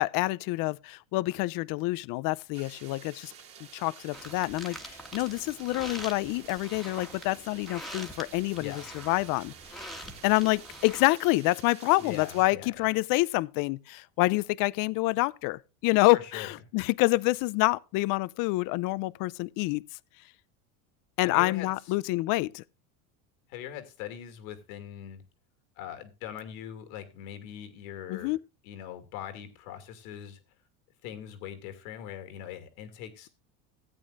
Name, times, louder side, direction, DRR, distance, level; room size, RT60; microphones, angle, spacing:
voice 1, 0.0-3.3 3.7-9.5 10.2-19.8 21.2-22.6 28.1-28.4, left 21 dB, 55° left, 0.6 m, -27 dB
sound 1, 2.5-12.5, right 8 dB, 35° right, 2.6 m, -50 dB
sound 2, 4.1-11.1, equal, ahead, 1.6 m, -45 dB
voice 2, 12.0-12.9 16.1-16.5 21.2-21.9 23.5-25.2 25.8-28.3 28.6-30.4 31.0-33.3, left 10 dB, 75° left, 2.6 m, -41 dB
16.0 x 8.6 x 2.5 m
supercardioid pair, 120°, 41 cm